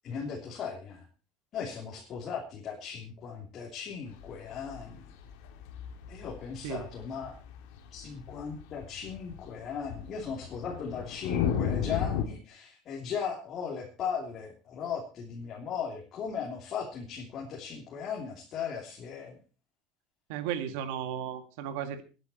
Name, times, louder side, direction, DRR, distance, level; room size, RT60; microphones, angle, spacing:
voice 1, 0.0-1.1 1.5-5.0 6.1-7.3 7.9-19.4, left 6 dB, 35° left, -2 dB, 3.2 m, -37 dB
sound 1, 4.2-12.3, left 8 dB, 85° left, 2.7 m, -35 dB
voice 2, 20.3-22.0, right 9 dB, 85° right, 8 dB, 2.1 m, -34 dB
20.5 x 10.5 x 4.4 m, 0.34 s
cardioid pair, 165°, 0 cm